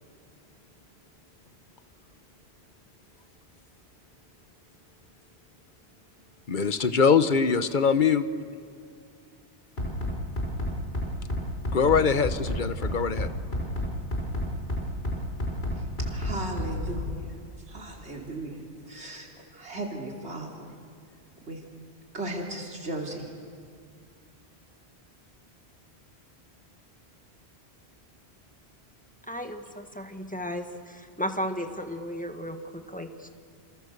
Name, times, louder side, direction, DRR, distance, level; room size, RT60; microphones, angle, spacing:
voice 1, 6.5-8.3 11.7-13.3, left 6 dB, 50° left, 12 dB, 1.1 m, -23 dB
Bass drum, 9.8-17.2, left 1 dB, 65° left, 5.5 m, -30 dB
voice 2, 15.8-17.4 17.7-18.6 18.9-20.7 21.5-21.6 22.1-23.2, right 2 dB, 85° right, 0 dB, 3.3 m, -36 dB
voice 3, 29.3-33.3, equal, 5° left, 6 dB, 1.5 m, -34 dB
27.5 x 27.5 x 6.7 m, 2.3 s
omnidirectional pair, 1.1 m